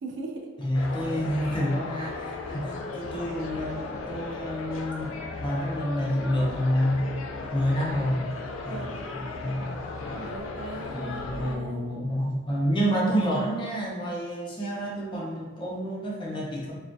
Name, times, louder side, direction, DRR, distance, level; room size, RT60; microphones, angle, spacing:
voice 1, 0.0-0.5 1.4-1.8 8.6-9.0 10.1-11.8, right 3 dB, 60° right, 2 dB, 0.3 m, -39 dB
voice 2, 0.6-7.0 7.5-8.3 8.6-10.3 10.9-16.7, equal, 25° left, -4 dB, 0.5 m, -29 dB
sound 1, 0.7-11.6, left 3 dB, 85° left, 0.3 m, -36 dB
2.3 x 2.2 x 2.5 m, 1.4 s
head